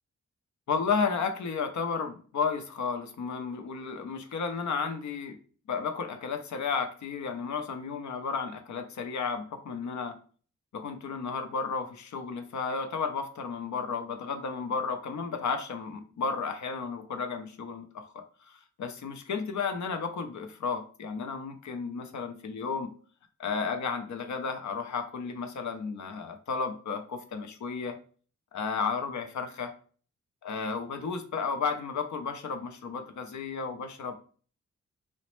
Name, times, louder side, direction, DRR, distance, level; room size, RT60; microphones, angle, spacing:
voice 1, 0.7-5.4 5.7-10.2 10.7-22.9 23.4-28.0 28.5-29.7 30.4-34.2, left 5 dB, 75° left, 6 dB, 0.6 m, -33 dB
3.9 x 2.1 x 3.0 m, 0.42 s
wide cardioid pair, 145°, 30 cm